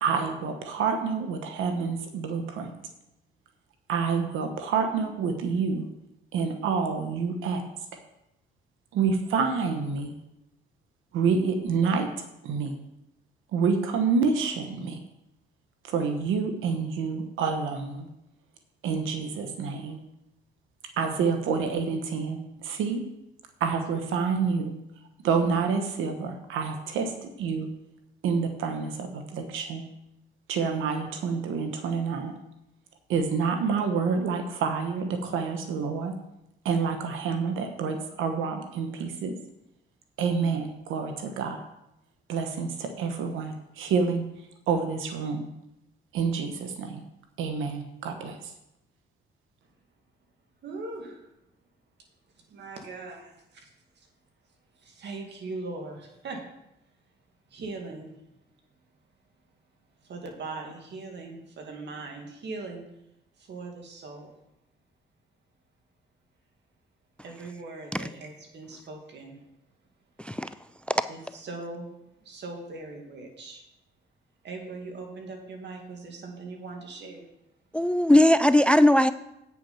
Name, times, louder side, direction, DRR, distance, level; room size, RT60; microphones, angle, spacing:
voice 1, 0.0-2.7 3.9-5.9 6.3-7.6 8.9-10.1 11.1-12.1 12.4-12.8 13.5-15.0 15.9-18.1 18.8-20.0 21.0-23.0 23.6-24.7 25.2-27.7 28.2-29.8 30.5-32.4 33.1-36.2 36.6-39.3 40.2-41.6 42.3-44.2 44.7-45.5 46.1-47.0 47.4-48.5, right 5 dB, 85° right, 1.2 m, -28 dB
voice 2, 50.6-51.3 52.4-54.1 54.7-56.5 57.5-58.4 60.0-62.8 63.4-64.3 67.2-69.5 70.4-70.5 71.1-71.9 72.2-73.6 74.4-77.3, right 3 dB, 60° right, 2.1 m, -40 dB
voice 3, 70.2-70.5 77.7-79.1, left 1 dB, 5° left, 0.3 m, -19 dB
8.9 x 6.1 x 5.6 m
cardioid pair, 90°, 20 cm